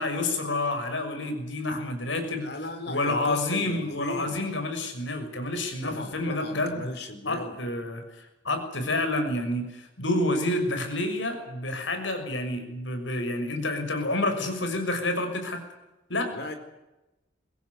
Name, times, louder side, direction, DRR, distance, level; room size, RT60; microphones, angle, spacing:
voice 1, 0.0-2.5 2.9-6.9 7.2-15.6 16.1-16.3, left 2 dB, 85° left, 6 dB, 6.2 m, -29 dB
voice 2, 2.4-4.4 5.8-7.6 16.3-16.5, left 2 dB, 60° left, 8 dB, 4.6 m, -37 dB
23.0 x 17.5 x 9.7 m, 0.97 s
head